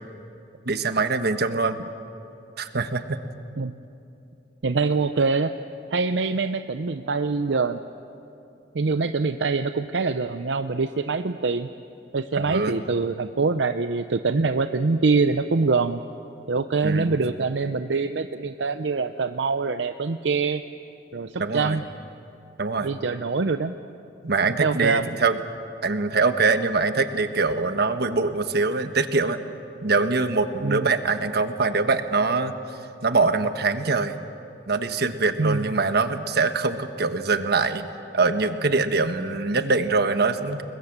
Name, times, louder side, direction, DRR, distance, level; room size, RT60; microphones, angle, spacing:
voice 1, 0.6-1.8 2.6-3.2 12.4-12.8 16.8-17.1 21.4-21.8 22.6-22.9 24.2-25.4 25.8-29.4 29.8-32.5 33.0-34.1 34.7-37.9 38.1-40.6, right 3 dB, 60° right, 9 dB, 1.3 m, -23 dB
voice 2, 4.6-5.5 5.9-7.8 8.7-11.7 12.1-16.0 16.5-20.6 21.1-21.8 22.8-23.7 24.6-25.0 30.6-30.9 35.4-35.7, right 4 dB, 80° right, 9 dB, 0.6 m, -24 dB
29.0 x 21.5 x 7.4 m, 2.8 s
head